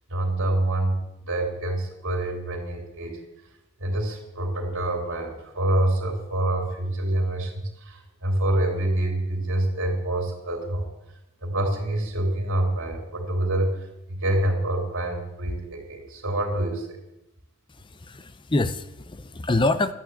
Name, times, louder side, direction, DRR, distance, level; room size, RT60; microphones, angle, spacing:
voice 1, 0.1-3.2 3.8-10.9 11.4-17.0, right 1 dB, 60° right, 1 dB, 3.1 m, -26 dB
voice 2, 17.7-19.9, left 2 dB, 20° left, 12 dB, 0.6 m, -26 dB
11.5 x 9.2 x 8.0 m, 0.89 s
head